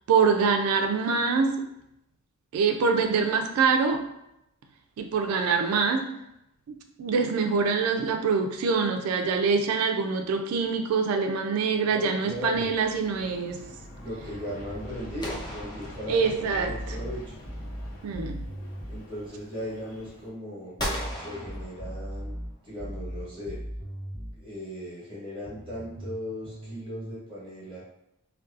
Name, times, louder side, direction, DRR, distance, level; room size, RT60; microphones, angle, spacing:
voice 1, 0.1-1.7 2.5-4.1 5.0-6.1 6.7-13.6 16.1-17.0 18.0-18.5, right 5 dB, 90° right, 9 dB, 0.3 m, -25 dB
voice 2, 11.8-12.7 14.0-17.3 18.9-20.7 21.1-22.3 22.6-23.6 24.4-27.8, left 1 dB, 25° right, -7 dB, 1.0 m, -37 dB
Aircraft, 12.3-20.3, left 1 dB, 75° left, 0.6 m, -45 dB
sound 1, 15.2-16.7 20.8-22.4, equal, 20° left, 0.4 m, -36 dB
sound 2, 16.5-19.0 20.8-24.4 25.5-27.1, equal, 40° left, 1.1 m, -38 dB
2.6 x 2.2 x 2.4 m, 0.83 s
head